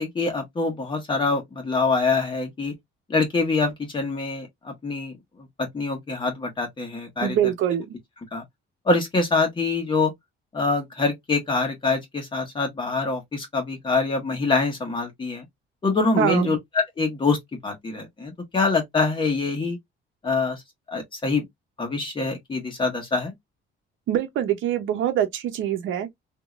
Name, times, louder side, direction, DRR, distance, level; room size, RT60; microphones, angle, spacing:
voice 1, 0.0-2.7 3.1-5.1 5.6-7.4 8.3-8.4 8.8-10.1 10.5-15.4 15.8-17.4 17.6-19.8 20.2-20.6 20.9-21.4 21.8-23.3, left 3 dB, 25° left, 1.5 m, -25 dB
voice 2, 7.2-8.0 16.2-16.5 24.1-26.1, right 10 dB, 70° right, 0.8 m, -24 dB
3.7 x 2.9 x 2.4 m
cardioid pair, 155°, 21 cm